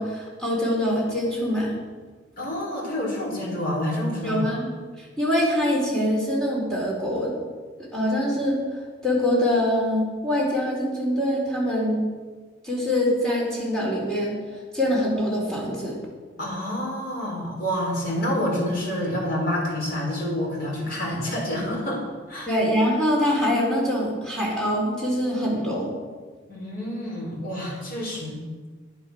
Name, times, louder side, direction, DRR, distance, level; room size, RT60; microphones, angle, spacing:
voice 1, 0.0-1.7 4.2-4.7 5.0-7.3 7.9-8.6 9.0-12.0 12.6-14.4 14.7-16.0 22.5-25.9, equal, 5° left, -5 dB, 3.9 m, -24 dB
voice 2, 2.4-4.4 16.4-22.0 22.3-22.5 26.5-28.4, left 1 dB, 55° left, -4 dB, 5.0 m, -28 dB
11.0 x 10.0 x 6.5 m, 1.5 s
head